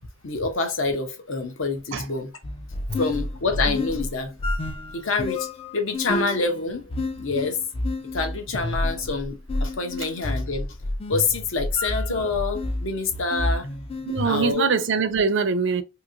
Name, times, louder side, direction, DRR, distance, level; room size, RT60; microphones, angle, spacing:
voice 1, 0.2-2.3 3.0-4.3 4.6-6.9 7.2-7.6 8.1-10.7 11.1-13.7 14.2-14.7, left 4 dB, 60° left, 0.7 m, -27 dB
sound 1, 2.4-14.5, left 2 dB, 25° left, 0.3 m, -30 dB
voice 2, 14.1-15.8, right 5 dB, 55° right, 0.4 m, -23 dB
2.9 x 2.7 x 2.5 m
head